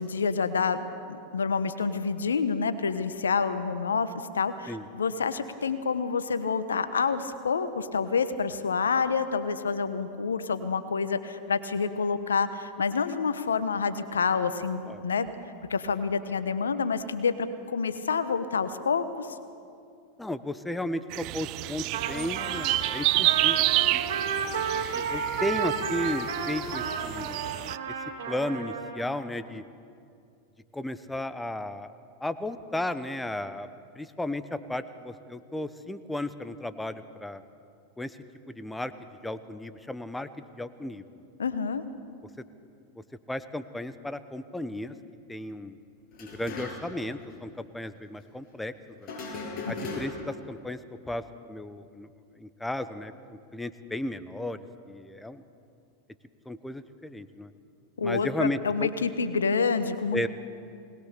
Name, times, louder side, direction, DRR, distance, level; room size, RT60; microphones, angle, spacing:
voice 1, 0.0-15.3 15.7-19.3 41.4-41.8 49.6-49.7 58.0-60.3, left 5 dB, 90° left, 12 dB, 1.1 m, -28 dB
voice 2, 20.2-24.1 24.9-27.4 27.9-28.0 28.3-29.6 30.7-31.9 32.2-33.7 33.9-37.4 38.0-38.2 38.5-38.9 39.2-40.3 40.5-41.0 43.3-44.9 45.3-45.8 46.2-48.7 49.0-49.1 49.7-50.8 51.1-52.1 52.4-55.4 56.5-57.5 58.0-58.9 60.1-60.3, left 1 dB, 5° left, 12 dB, 1.0 m, -34 dB
sound 1, 21.1-27.8, right 18 dB, 50° right, 0.5 m, -29 dB
Trumpet, 21.9-29.0, right 6 dB, 75° right, 3.4 m, -32 dB
sound 2, 46.1-47.0 47.3-47.4 49.0-50.4, left 3 dB, 45° left, 7.0 m, -38 dB
20.5 x 20.0 x 6.8 m, 2.4 s
hypercardioid pair, 100°, 0 cm